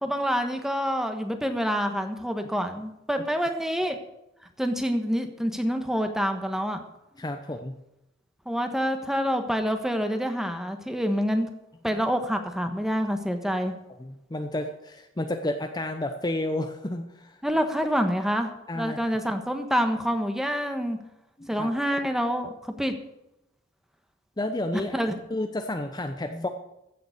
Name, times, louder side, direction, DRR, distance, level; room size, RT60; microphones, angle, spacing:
voice 1, 0.0-4.0 4.6-6.8 8.4-11.5 11.8-13.7 17.4-21.0 21.5-23.0 24.9-25.1, equal, 5° right, 6 dB, 1.3 m, -27 dB
voice 2, 7.2-7.7 14.0-17.4 18.7-19.0 21.4-21.7 24.4-24.9 25.3-26.5, left 1 dB, 20° left, 6 dB, 0.7 m, -31 dB
15.5 x 7.0 x 6.6 m, 0.88 s
head